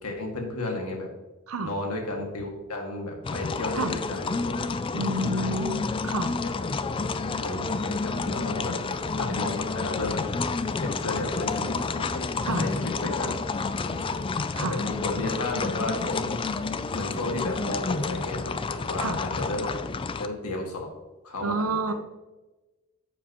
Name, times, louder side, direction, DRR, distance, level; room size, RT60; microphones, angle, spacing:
voice 1, 0.0-1.1 1.6-4.5 5.0-5.6 7.4-8.8 9.2-10.2 10.8-12.2 12.5-13.3 13.8-14.2 14.6-16.3 16.9-19.7 20.2-20.9 21.2-21.9, left 2 dB, 90° left, 1 dB, 2.0 m, -33 dB
sound 1, 3.2-20.3, left 4 dB, 25° left, 0.3 m, -30 dB
voice 2, 4.9-6.4 12.4-12.7 14.5-14.8 19.0-19.2 21.4-21.9, right 2 dB, 70° right, 9 dB, 0.8 m, -29 dB
11.0 x 7.3 x 3.0 m, 1.1 s
head